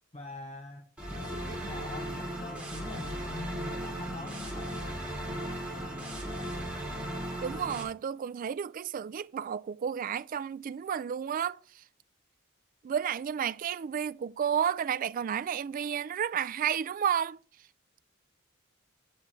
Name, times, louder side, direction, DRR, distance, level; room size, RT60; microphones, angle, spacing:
voice 1, 0.1-4.8, left 2 dB, 30° left, 0.8 m, -44 dB
sound 1, 1.0-7.8, right 1 dB, 5° right, 2.9 m, -37 dB
voice 2, 7.4-11.8 12.8-17.4, right 8 dB, 40° right, 0.3 m, -32 dB
8.4 x 6.8 x 3.7 m
head